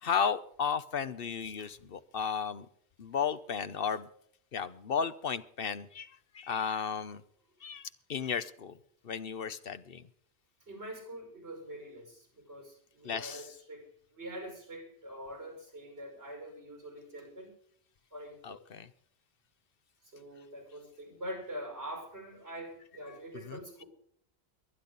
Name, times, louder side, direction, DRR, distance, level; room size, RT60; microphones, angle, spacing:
voice 1, 0.0-2.7 3.0-4.1 4.5-7.2 7.6-8.7 9.0-10.0 13.0-13.5 18.4-18.9 23.4-23.6, left 6 dB, 60° left, 13 dB, 1.0 m, -34 dB
voice 2, 1.6-2.0 10.6-17.5 18.1-18.6 20.0-23.9, right 1 dB, 85° right, 3 dB, 5.8 m, -45 dB
22.5 x 10.5 x 4.0 m, 0.65 s
omnidirectional pair, 1.1 m